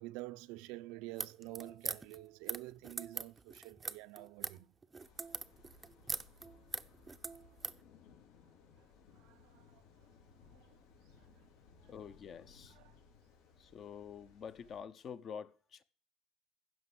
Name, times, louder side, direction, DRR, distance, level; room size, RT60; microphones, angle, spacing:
voice 1, 0.0-4.7 9.2-9.8 10.5-10.8 12.8-12.9, right 19 dB, 75° right, 0.6 m, -48 dB
sound 1, 1.1-7.8, right 4 dB, 15° right, 0.7 m, -42 dB
sound 2, 5.0-14.8, left 5 dB, 85° left, 4.9 m, -62 dB
voice 2, 9.9-10.2 11.9-12.8 13.4-15.8, left 7 dB, 35° left, 0.9 m, -48 dB
15.5 x 6.2 x 7.9 m
cardioid pair, 150°, 0 cm